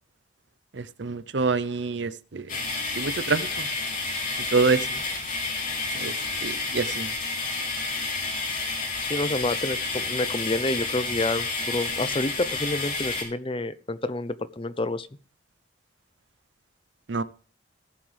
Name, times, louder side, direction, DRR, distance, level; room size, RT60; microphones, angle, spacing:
voice 1, 0.7-2.5 3.0-3.7 4.5-4.9 5.9-6.1 6.4-7.1 17.1-17.2, right 4 dB, 65° right, 0.7 m, -26 dB
sound 1, 2.5-13.2, left 3 dB, 45° left, 3.6 m, -30 dB
voice 2, 4.7-5.0 9.0-15.1, left 2 dB, 25° left, 0.7 m, -29 dB
19.0 x 7.4 x 3.4 m
head